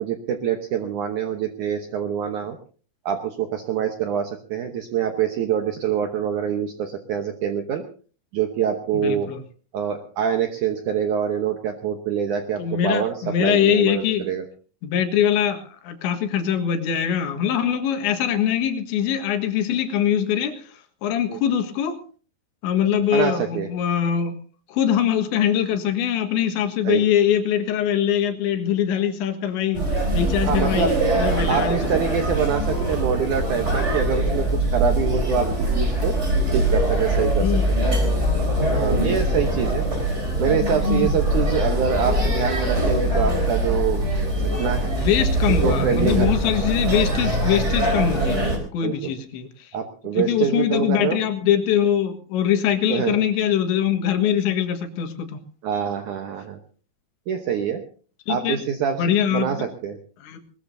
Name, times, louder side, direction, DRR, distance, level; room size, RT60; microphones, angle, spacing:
voice 1, 0.0-2.6 3.1-7.8 8.3-9.3 9.7-14.5 21.3-21.4 23.1-23.7 26.8-27.1 30.5-31.0 31.5-36.2 36.5-37.5 38.7-39.9 40.4-44.0 44.4-44.9 45.6-46.3 48.8-49.1 49.7-51.2 52.9-53.2 55.6-56.6 57.3-57.8 58.3-59.0 59.3-60.0, right 8 dB, 80° right, 5 dB, 1.7 m, -25 dB
voice 2, 8.9-9.4 12.6-14.3 14.8-20.7 21.0-22.0 22.6-24.4 24.7-32.1 37.4-37.7 39.0-39.2 44.9-49.7 50.2-55.4 58.3-58.6 59.0-59.5 60.2-60.4, left 9 dB, 80° left, 6 dB, 3.9 m, -23 dB
sound 1, 29.7-48.6, right 1 dB, 15° right, 4.0 m, -22 dB
21.0 x 21.0 x 2.7 m, 0.40 s
omnidirectional pair, 5.2 m